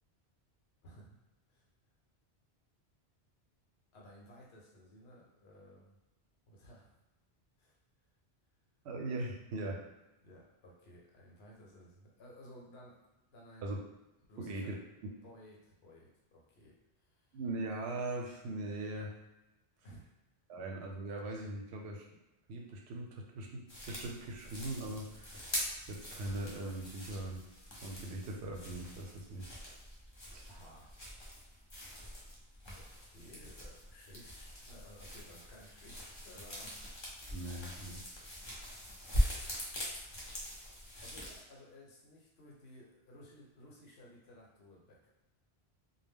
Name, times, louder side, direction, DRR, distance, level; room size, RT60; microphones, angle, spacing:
voice 1, 0.8-1.2 1.5-1.6 3.9-5.9 6.5-6.9 7.6-7.8 10.2-13.1 13.3-13.7 14.3-14.7 15.2-17.4 19.8-20.1 30.5-30.9 32.8-36.7 41.0-45.1, equal, 75° left, -2 dB, 0.9 m, -56 dB
voice 2, 8.8-9.8 13.6-13.8 14.4-14.8 17.3-19.1 20.5-22.1 22.5-25.5 25.9-27.4 27.8-29.5 30.3-30.4 37.3-38.0, right 2 dB, 90° right, 0 dB, 0.8 m, -40 dB
sound 1, 23.7-41.4, equal, 35° left, 0.6 m, -42 dB
2.1 x 2.1 x 3.4 m, 1.0 s
omnidirectional pair, 1.1 m